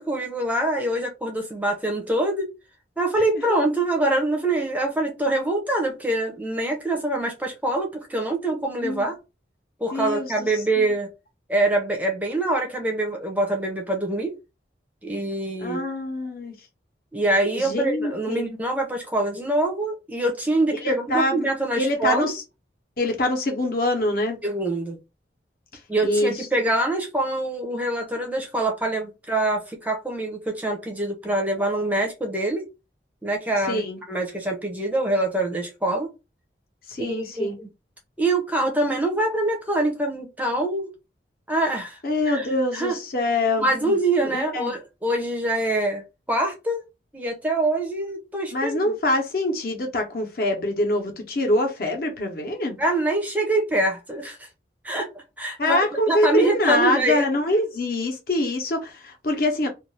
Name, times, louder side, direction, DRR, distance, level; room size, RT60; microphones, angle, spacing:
voice 1, 0.0-2.5 3.0-9.2 9.8-11.1 11.5-14.3 15.0-15.8 17.1-22.3 24.4-25.0 25.9-32.7 33.2-36.1 37.0-37.7 38.2-40.9 41.5-42.0 42.3-42.5 42.7-43.0 43.6-46.0 46.3-46.8 47.1-48.9 52.8-54.5 54.8-55.1 55.4-55.8 56.1-57.2, right 2 dB, 10° right, 0.5 m, -24 dB
voice 2, 9.9-10.5 10.8-10.9 15.6-16.5 17.5-18.5 20.8-21.5 21.8-22.4 23.0-24.4 26.0-26.3 33.7-34.0 36.9-37.5 42.0-44.0 44.2-44.7 48.5-52.8 55.6-59.7, left 1 dB, 55° left, 0.8 m, -24 dB
2.5 x 2.3 x 3.2 m
head